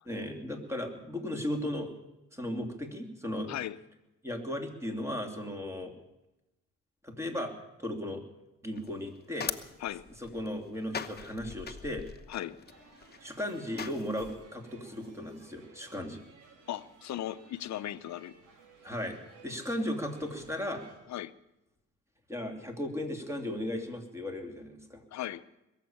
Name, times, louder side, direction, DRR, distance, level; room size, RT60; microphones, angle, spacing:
voice 1, 0.1-1.9 2.3-3.5 4.2-5.9 7.0-7.5 7.8-8.2 8.6-9.5 10.2-12.0 13.2-16.2 18.8-19.2 19.4-20.8 22.3-25.0, left 1 dB, 10° right, 3 dB, 2.8 m, -36 dB
voice 2, 3.5-3.8 9.8-10.0 12.3-12.6 16.7-18.3 21.1-21.3 25.1-25.4, left 12 dB, 65° left, 14 dB, 0.8 m, -37 dB
sound 1, 8.8-14.4, left 6 dB, 35° left, 1.0 m, -42 dB
sound 2, 12.6-21.0, right 4 dB, 80° right, 3.5 m, -57 dB
22.0 x 7.5 x 8.8 m, 0.95 s
cardioid pair, 90°, 30 cm